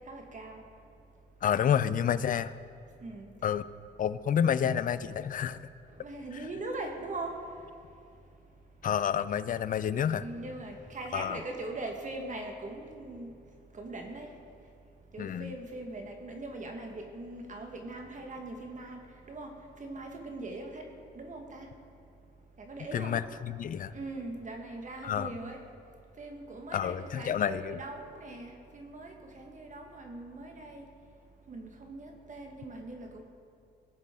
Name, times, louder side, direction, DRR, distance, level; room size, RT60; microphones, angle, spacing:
voice 1, 0.1-0.6 3.0-3.3 6.0-7.3 10.1-13.3 13.7-14.3 15.1-19.0 19.3-19.5 19.8-20.8 21.1-21.7 22.6-23.1 23.9-25.6 26.2-30.8 31.5-33.2, right 2 dB, 40° right, 2 dB, 1.4 m, -41 dB
voice 2, 1.4-2.5 3.4-3.6 4.0-5.7 8.8-10.3 11.1-11.4 15.2-15.5 22.9-23.9 25.0-25.3 26.7-27.8, left 8 dB, 45° left, 15 dB, 0.4 m, -29 dB
17.5 x 6.6 x 3.7 m, 2.4 s
cardioid pair, 90°, 20 cm